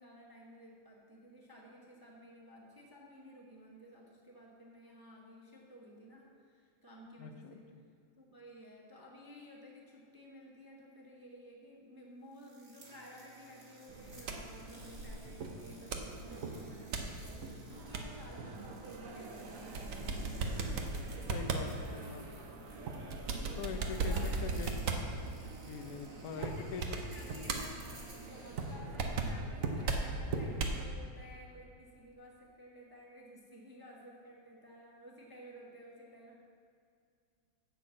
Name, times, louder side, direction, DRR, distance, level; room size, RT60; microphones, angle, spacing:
voice 1, 0.0-7.7 8.2-19.9 20.4-20.9 21.1-24.5 26.4-27.8 28.2-36.4, equal, 15° right, -3 dB, 0.8 m, -54 dB
voice 2, 7.2-7.6 20.6-20.9 21.3-22.2 23.6-24.9 25.2-25.3 25.6-27.0, left 6 dB, 65° left, 7 dB, 0.9 m, -43 dB
sound 1, 12.3-28.7, right 1 dB, 30° right, 1.8 m, -56 dB
sound 2, 13.9-30.9, right 3 dB, 55° right, 1.0 m, -38 dB
11.0 x 4.3 x 7.7 m, 2.3 s
omnidirectional pair, 2.2 m